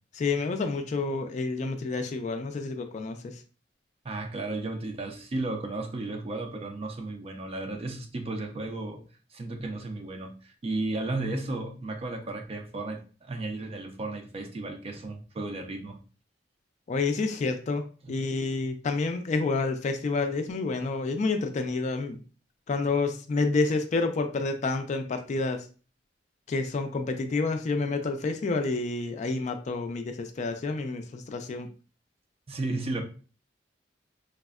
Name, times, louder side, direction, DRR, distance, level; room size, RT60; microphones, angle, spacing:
voice 1, 0.1-3.4 16.9-22.2 22.7-25.6 26.5-31.7, left 3 dB, 40° left, 0.3 m, -29 dB
voice 2, 4.0-9.0 9.3-16.0 18.0-18.1 32.5-33.0, right 2 dB, 35° right, 0.4 m, -34 dB
3.4 x 2.1 x 2.3 m
head